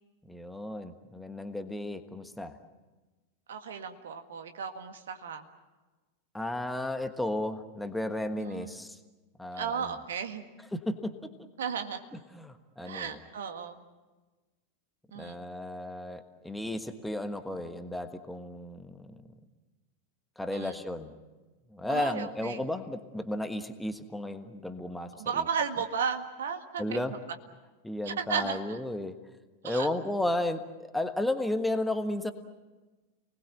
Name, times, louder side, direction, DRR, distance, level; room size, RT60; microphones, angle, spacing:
voice 1, 0.3-2.6 6.3-9.0 9.4-9.9 10.7-11.3 12.3-13.2 15.1-19.2 20.4-21.1 21.7-25.4 26.8-27.1 27.8-29.2 29.6-30.6 30.9-32.3, left 1 dB, 5° left, 8 dB, 1.4 m, -33 dB
voice 2, 3.5-5.4 8.4-8.7 9.5-10.5 11.6-12.0 12.8-13.8 15.1-15.4 20.5-20.8 21.9-22.6 25.2-27.1 28.0-28.8 29.6-29.9, right 6 dB, 60° right, 7 dB, 1.8 m, -34 dB
29.0 x 20.0 x 7.6 m, 1.2 s
figure-of-eight pair, 90°, 0 cm